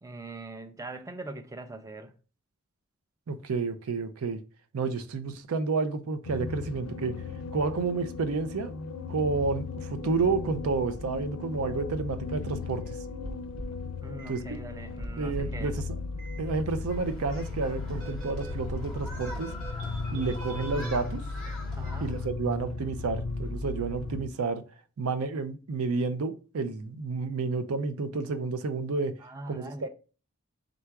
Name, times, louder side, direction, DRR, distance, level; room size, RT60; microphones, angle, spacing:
voice 1, 0.0-2.1 14.0-15.7 21.8-22.1 29.2-29.9, right 2 dB, 15° right, 0.4 m, -42 dB
voice 2, 3.3-4.4 4.7-7.2 7.5-8.7 9.1-12.8 14.3-14.6 15.2-15.8 16.4-19.5 20.1-21.2 22.0-24.6 25.0-29.2 29.5-29.9, right 4 dB, 85° right, 0.5 m, -30 dB
sound 1, 6.2-24.2, left 4 dB, 85° left, 0.4 m, -36 dB
sound 2, 13.2-13.8 14.2-14.4 15.0-15.6 16.2-16.4 16.9-17.5 18.0-20.9, right 1 dB, 65° right, 0.8 m, -41 dB
Human group actions, 16.9-22.3, left 1 dB, 5° left, 0.9 m, -45 dB
3.8 x 2.3 x 4.4 m
head